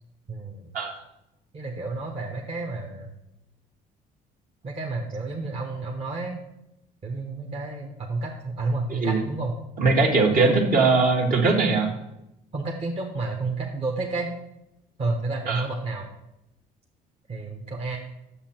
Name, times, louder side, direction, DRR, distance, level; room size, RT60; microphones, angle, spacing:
voice 1, 0.3-0.7 1.5-3.1 4.6-6.4 7.0-9.5 10.3-10.5 12.5-14.3 15.0-16.1 17.3-18.0, right 3 dB, 35° right, 0 dB, 1.2 m, -30 dB
voice 2, 9.8-11.9 15.5-15.6, right 3 dB, 55° right, 1 dB, 1.9 m, -20 dB
8.6 x 7.3 x 4.5 m, 0.85 s
cardioid pair, 110°, 17 cm